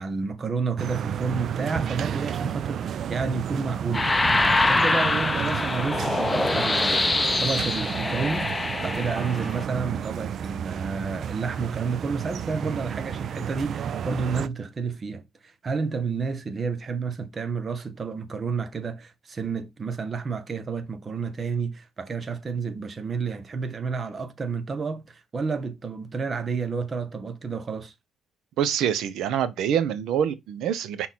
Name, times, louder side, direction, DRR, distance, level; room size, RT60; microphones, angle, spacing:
voice 1, 0.0-4.4 4.7-8.5 8.8-27.9, right 4 dB, 40° right, 1.1 m, -30 dB
sound 1, 0.8-14.5, right 8 dB, 65° right, 0.4 m, -32 dB
sound 2, 3.9-9.6, left 2 dB, 20° left, 0.7 m, -24 dB
voice 2, 28.6-31.1, right 9 dB, 85° right, 0.8 m, -25 dB
6.1 x 3.9 x 4.2 m
cardioid pair, 90°, 0 cm